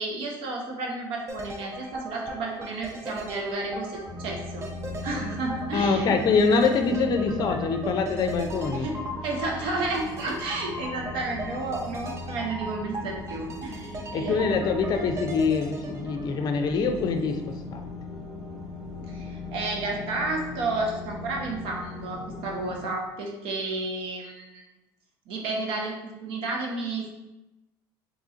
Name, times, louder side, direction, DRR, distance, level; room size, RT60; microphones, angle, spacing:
voice 1, 0.0-4.6 5.0-6.4 8.7-14.9 19.1-24.6 25.3-27.1, right 3 dB, 65° right, 0 dB, 0.8 m, -32 dB
sound 1, 1.3-17.2 17.5-17.6, right 1 dB, 30° right, 0.6 m, -39 dB
sound 2, 4.0-22.9, left 2 dB, 85° right, 1.5 m, -39 dB
voice 2, 5.7-8.9 14.1-17.9, left 4 dB, 45° left, 5 dB, 0.5 m, -24 dB
3.0 x 2.4 x 3.9 m, 1.0 s
supercardioid pair, 105°, 10 cm